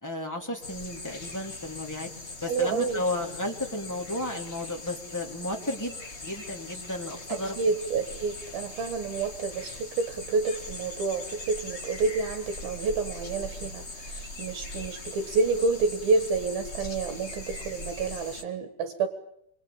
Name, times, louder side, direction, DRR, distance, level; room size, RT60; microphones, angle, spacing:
voice 1, 0.0-2.1 2.4-5.9 6.2-7.6, left 1 dB, 5° left, 1 dB, 2.3 m, -33 dB
sound 1, 0.6-18.4, left 2 dB, 30° left, 1.2 m, -41 dB
voice 2, 2.5-3.0 7.3-19.1, right 4 dB, 70° right, 7 dB, 3.3 m, -29 dB
27.5 x 22.0 x 8.7 m, 0.78 s
omnidirectional pair, 4.6 m